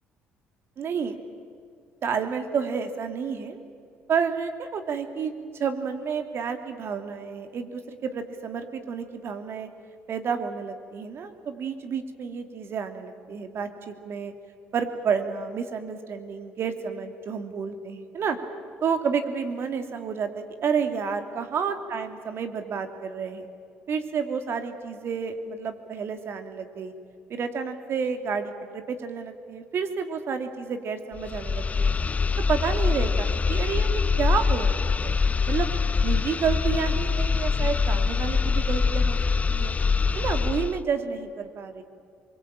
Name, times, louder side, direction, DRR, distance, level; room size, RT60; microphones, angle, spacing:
voice 1, 0.8-1.2 2.0-3.6 4.1-9.7 10.1-14.3 14.7-18.4 18.8-23.5 23.9-26.9 27.3-32.0 32.5-35.2 35.5-35.7 36.0-39.7 40.1-41.8, right 6 dB, 55° right, 7 dB, 2.8 m, -30 dB
sound 1, 31.1-40.8, left 5 dB, 30° left, 0.6 m, -24 dB
24.0 x 23.0 x 8.9 m, 2.3 s
hypercardioid pair, 65°, 5 cm